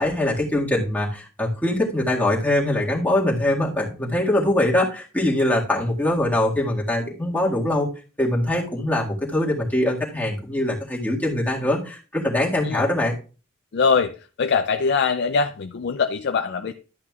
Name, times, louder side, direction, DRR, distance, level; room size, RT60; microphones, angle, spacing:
voice 1, 0.0-7.9 8.2-13.1, left 1 dB, 10° left, -4 dB, 1.9 m, -22 dB
voice 2, 13.7-14.1 14.4-16.7, left 5 dB, 55° left, 8 dB, 0.4 m, -22 dB
12.0 x 8.5 x 2.4 m, 0.35 s
head